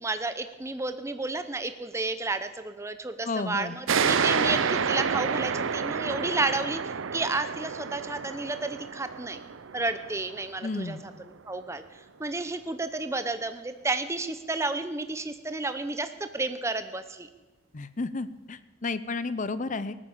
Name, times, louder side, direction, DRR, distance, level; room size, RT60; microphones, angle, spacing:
voice 1, 0.0-9.4 9.7-11.0 11.5-17.3, right 2 dB, 15° right, 10 dB, 0.7 m, -31 dB
voice 2, 3.2-3.7 10.6-11.0 17.7-20.0, left 3 dB, 40° left, 15 dB, 0.6 m, -32 dB
sound 1, 3.9-11.0, right 6 dB, 80° right, 0.6 m, -29 dB
18.0 x 9.9 x 7.2 m, 1.2 s
head